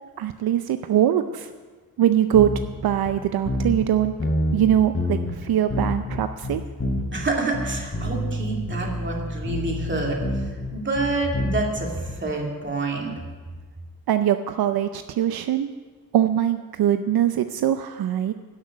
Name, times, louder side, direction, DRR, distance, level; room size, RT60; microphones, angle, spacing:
voice 1, 0.2-1.5 2.0-2.5 2.8-4.1 4.5-6.6 14.1-15.7 16.1-18.3, right 11 dB, 80° right, 9 dB, 0.6 m, -22 dB
sound 1, 2.3-2.8 3.0-3.1 3.4-3.9 4.2-5.4 5.7-7.2 7.5-12.1, left 1 dB, 35° left, 3.0 m, -27 dB
voice 2, 7.1-10.2 10.7-13.1, right 3 dB, 30° right, -1 dB, 2.5 m, -27 dB
13.0 x 6.0 x 8.4 m, 1.4 s
cardioid pair, 100°, 37 cm